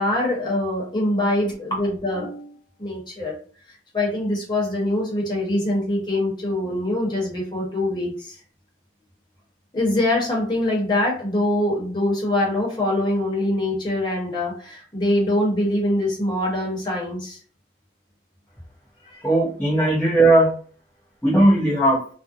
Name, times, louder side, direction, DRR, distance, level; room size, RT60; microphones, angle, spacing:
voice 1, 0.0-2.5 2.8-3.4 3.9-8.4 9.7-17.4 19.0-19.2, left 1 dB, 25° left, -4 dB, 1.0 m, -23 dB
voice 2, 19.2-20.5 21.2-22.0, right 1 dB, 10° left, -8 dB, 0.5 m, -17 dB
2.5 x 2.0 x 2.6 m, 0.43 s
head